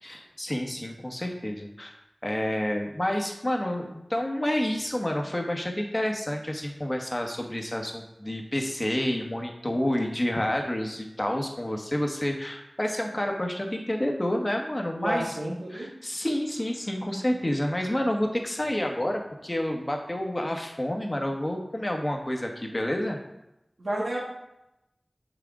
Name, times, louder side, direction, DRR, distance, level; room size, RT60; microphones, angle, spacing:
voice 1, 0.0-2.0 2.2-15.2 15.7-23.2, left 1 dB, 30° left, 2 dB, 1.2 m, -29 dB
voice 2, 15.0-15.9 23.8-24.2, right 1 dB, 90° right, -4 dB, 1.9 m, -30 dB
6.6 x 6.1 x 3.7 m, 0.88 s
wide cardioid pair, 45°, 0 cm